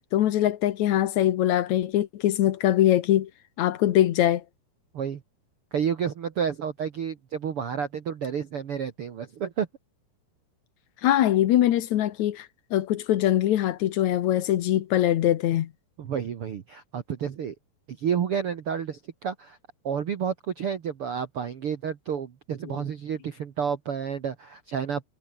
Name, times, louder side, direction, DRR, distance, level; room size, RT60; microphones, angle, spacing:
voice 1, 0.1-3.3 3.6-4.4 11.0-15.7 22.7-22.8, left 12 dB, 75° left, 1.7 m, -22 dB
voice 2, 5.7-9.7 16.0-17.5 17.9-19.6 19.8-25.1, right 7 dB, 75° right, 1.2 m, -30 dB
omnidirectional pair, 4.8 m